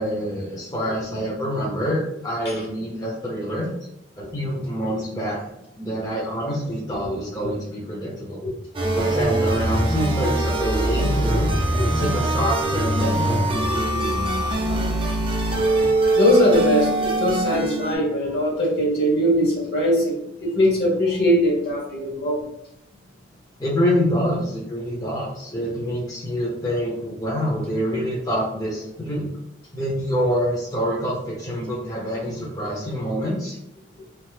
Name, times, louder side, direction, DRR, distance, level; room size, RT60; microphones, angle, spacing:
voice 1, 0.0-3.7 4.2-5.4 5.8-8.5 8.9-11.5 11.8-14.6 23.6-29.3 29.7-33.5, equal, 20° left, -4 dB, 0.6 m, -26 dB
sound 1, 8.7-18.0, right 1 dB, 25° right, 0.4 m, -22 dB
voice 2, 16.1-22.4, equal, 60° left, -2 dB, 1.1 m, -21 dB
3.1 x 2.0 x 3.1 m, 0.85 s
head